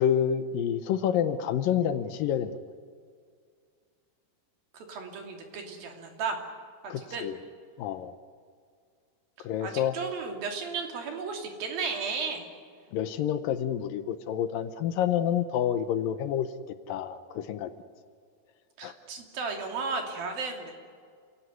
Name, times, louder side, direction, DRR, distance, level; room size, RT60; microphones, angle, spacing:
voice 1, 0.0-2.5 6.9-7.4 7.8-8.1 9.4-10.0 12.9-16.5 16.9-17.7 18.8-18.9, left 9 dB, 75° left, 11 dB, 2.4 m, -28 dB
voice 2, 4.7-6.4 6.8-7.2 9.6-12.5 18.8-20.7, right 4 dB, 70° right, 3 dB, 4.6 m, -34 dB
28.0 x 17.5 x 9.4 m, 2.1 s
omnidirectional pair, 4.4 m